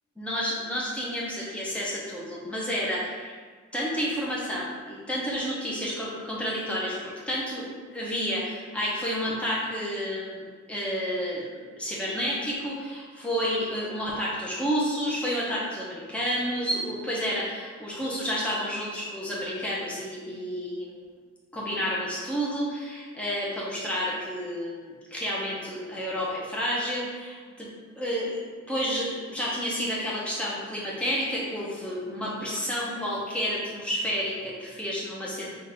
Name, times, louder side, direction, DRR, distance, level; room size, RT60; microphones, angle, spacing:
voice 1, 0.2-3.4 3.7-21.0 21.5-27.7 27.9-35.6, equal, 5° left, -6 dB, 0.7 m, -30 dB
3.8 x 2.5 x 4.2 m, 1.5 s
head